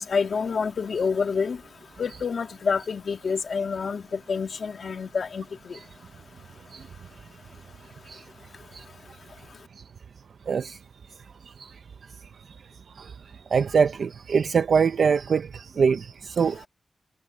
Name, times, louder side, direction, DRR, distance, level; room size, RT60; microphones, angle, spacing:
voice 1, 0.0-1.6 2.0-4.0 4.3-5.4, left 5 dB, 65° left, 1.8 m, -27 dB
voice 2, 10.5-10.8 11.6-11.7 13.0-13.1 13.5-16.7, right 6 dB, 75° right, 0.7 m, -23 dB
wide cardioid pair, 145°, 0 cm